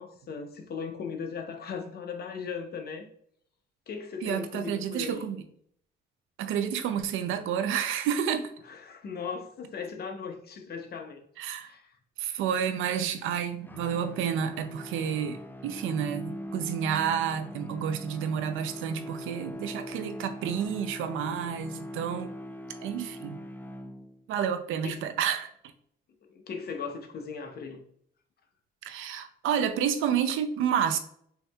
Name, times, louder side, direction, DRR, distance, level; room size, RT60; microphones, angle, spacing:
voice 1, 0.0-3.1 3.9-5.3 8.6-11.2 11.6-12.0 24.8-25.0 26.3-27.8, left 5 dB, 50° left, 0.7 m, -38 dB
voice 2, 4.2-5.4 6.4-8.5 11.4-11.7 12.2-22.3 22.8-23.4 24.3-25.5 28.9-31.0, right 8 dB, 85° right, 0.5 m, -30 dB
sound 1, 13.6-24.4, left 1 dB, 10° left, 0.3 m, -41 dB
5.6 x 2.7 x 2.3 m
cardioid pair, 90°, 20 cm